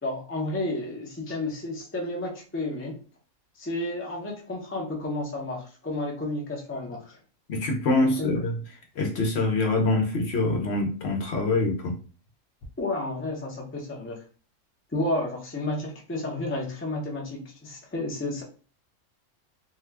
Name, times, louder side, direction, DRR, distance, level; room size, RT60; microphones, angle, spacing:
voice 1, 0.0-3.0 3.6-7.2 8.0-8.4 12.8-14.2 14.9-18.4, left 2 dB, 15° left, -2 dB, 0.4 m, -31 dB
voice 2, 7.5-8.5 9.0-12.0, left 2 dB, 60° left, 2 dB, 0.9 m, -25 dB
2.7 x 2.3 x 3.3 m, 0.38 s
omnidirectional pair, 1.3 m